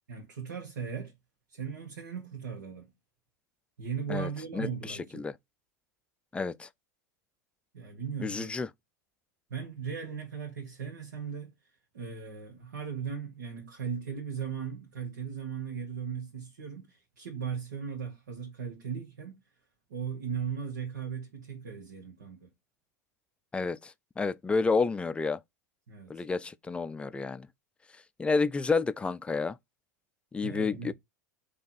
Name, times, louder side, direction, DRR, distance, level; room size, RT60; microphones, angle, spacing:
voice 1, 0.1-1.1 1.5-2.9 3.8-5.2 7.7-8.5 9.5-11.5 11.9-19.4 19.9-22.5 25.9-26.3 30.4-30.9, right 6 dB, 75° right, 1.4 m, -37 dB
voice 2, 4.1-5.3 6.3-6.7 8.2-8.7 23.5-25.4 26.1-27.5 28.2-29.6 30.3-30.9, left 4 dB, 10° left, 0.3 m, -30 dB
3.5 x 2.8 x 4.2 m
hypercardioid pair, 90°, 9 cm